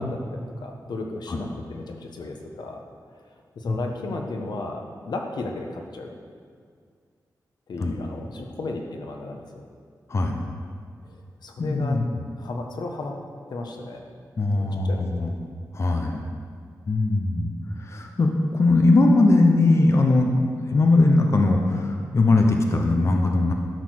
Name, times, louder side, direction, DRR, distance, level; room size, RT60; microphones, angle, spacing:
voice 1, 0.0-2.8 3.6-6.1 7.7-9.6 11.4-12.0 12.4-13.1 13.5-14.0 14.6-15.3, left 2 dB, 85° left, 2 dB, 1.2 m, -34 dB
voice 2, 10.1-10.4 11.6-12.0 14.4-15.3 15.7-16.2 16.9-17.5 17.8-23.5, left 2 dB, 40° left, 2 dB, 0.9 m, -20 dB
12.5 x 6.5 x 6.5 m, 2.1 s
wide cardioid pair, 170°, 7 cm